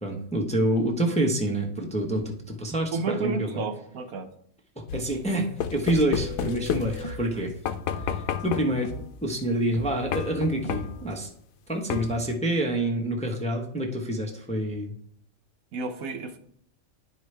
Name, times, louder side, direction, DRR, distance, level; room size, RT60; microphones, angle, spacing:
voice 1, 0.0-3.6 4.8-7.5 8.1-8.9 9.2-11.3 11.7-14.9, right 1 dB, 5° left, 1 dB, 0.7 m, -27 dB
voice 2, 2.9-4.3 15.7-16.4, right 3 dB, 80° right, 7 dB, 1.2 m, -31 dB
sound 1, 4.9-7.3 7.7-8.9 10.1-11.1 11.9-12.3, left 8 dB, 80° left, 1.1 m, -31 dB
sound 2, 6.1-7.4 7.9-9.2 9.7-11.3, left 2 dB, 40° left, 0.4 m, -40 dB
11.0 x 4.8 x 3.3 m, 0.65 s
omnidirectional pair, 1.4 m